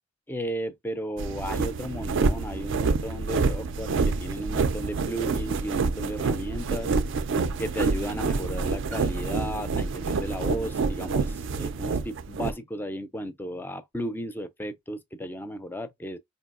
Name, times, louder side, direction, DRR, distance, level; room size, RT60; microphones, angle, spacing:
voice 1, 0.3-6.9 7.6-16.2, equal, 10° left, 0.4 m, -34 dB
sound 1, 1.2-12.5, right 4 dB, 65° right, 0.4 m, -27 dB
4.5 x 2.8 x 2.4 m
head